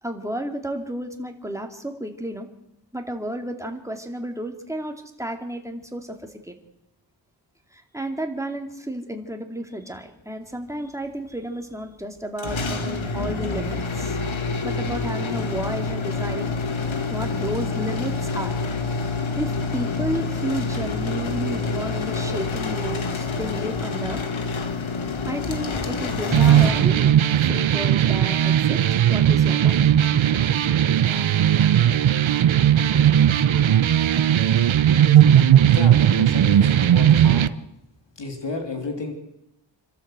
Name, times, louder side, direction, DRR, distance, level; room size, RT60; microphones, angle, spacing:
voice 1, 0.0-2.5 2.9-6.2 6.4-6.6 7.7-14.2 14.6-16.5 17.1-18.6 19.4-24.2 25.2-29.8, right 1 dB, 5° right, 4 dB, 2.4 m, -32 dB
sound 1, 12.4-27.3, left 3 dB, 85° left, 1.9 m, -27 dB
sound 2, 26.3-37.5, right 10 dB, 80° right, 0.8 m, -17 dB
voice 2, 35.7-37.5 38.2-39.1, left 3 dB, 65° left, 3 dB, 3.3 m, -32 dB
27.0 x 12.5 x 8.0 m, 0.83 s
wide cardioid pair, 120°, 46 cm